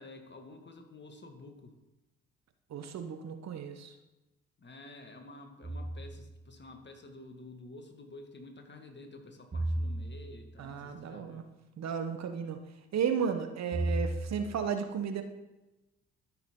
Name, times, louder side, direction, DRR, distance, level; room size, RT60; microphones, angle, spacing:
voice 1, 0.0-1.8 4.6-11.5, left 2 dB, 35° left, 5 dB, 1.8 m, -50 dB
voice 2, 2.7-3.9 10.6-11.4 11.8-12.6 12.9-15.2, right 7 dB, 55° right, 7 dB, 1.1 m, -34 dB
sound 1, 5.6-6.4 9.5-10.6 13.7-14.6, right 1 dB, 30° right, 2.3 m, -34 dB
12.5 x 6.2 x 3.7 m, 1.0 s
hypercardioid pair, 45°, 33 cm